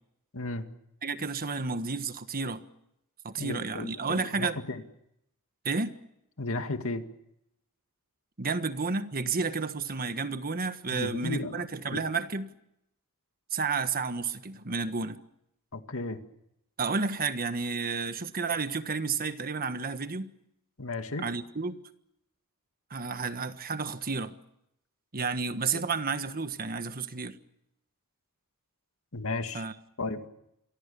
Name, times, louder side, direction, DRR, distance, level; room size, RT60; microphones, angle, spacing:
voice 1, 0.3-0.6 3.4-4.8 6.4-7.0 10.9-11.6 11.9-12.0 15.7-16.2 20.8-21.3 25.7-25.9 29.1-29.7 30.0-30.2, left 2 dB, 65° left, 2.2 m, -34 dB
voice 2, 1.0-2.6 3.2-4.6 5.6-5.9 8.4-12.5 13.5-15.2 16.8-20.3 21.2-21.8 22.9-24.4 25.1-27.4 29.5-29.7, right 4 dB, 40° right, 1.5 m, -31 dB
28.5 x 23.5 x 7.0 m
head